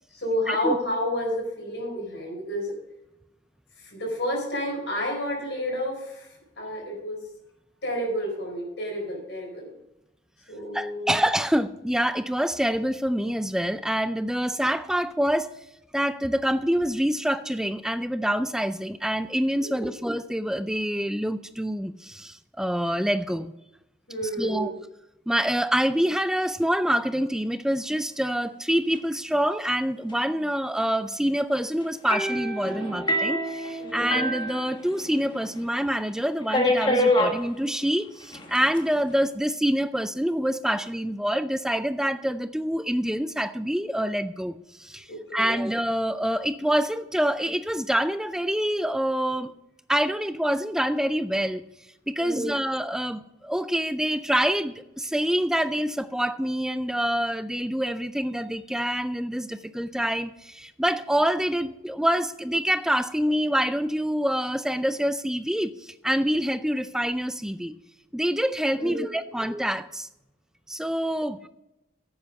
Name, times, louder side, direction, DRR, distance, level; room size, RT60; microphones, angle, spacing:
voice 1, 0.1-2.7 3.8-7.2 7.8-9.7 10.5-11.1 19.6-19.9 24.1-24.8 33.8-34.1 45.1-45.6 52.2-52.6 68.7-69.4, equal, 65° left, 4.7 m, -31 dB
voice 2, 10.7-15.5 15.9-23.5 24.4-24.7 25.3-49.5 49.9-51.6 52.1-67.7 68.1-70.1 70.7-71.5, equal, 5° right, 0.4 m, -26 dB
sound 1, 32.1-35.3 35.6-35.7 36.5-37.4 38.3-38.8, left 1 dB, 25° left, 1.4 m, -26 dB
10.0 x 8.0 x 5.3 m
head